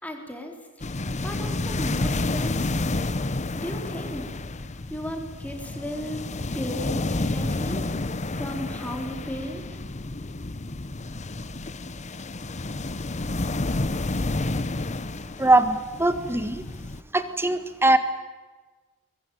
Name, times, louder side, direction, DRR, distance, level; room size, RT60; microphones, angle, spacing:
voice 1, 0.0-0.5 1.2-2.7 3.5-4.3 4.9-6.2 6.5-7.8 8.3-9.8, equal, 5° left, 2 dB, 4.0 m, -35 dB
sound 1, 0.8-17.0, left 2 dB, 35° left, 0.9 m, -30 dB
voice 2, 15.4-16.6 17.1-18.0, right 2 dB, 10° right, 10 dB, 1.7 m, -21 dB
23.5 x 22.5 x 9.3 m, 1.3 s
head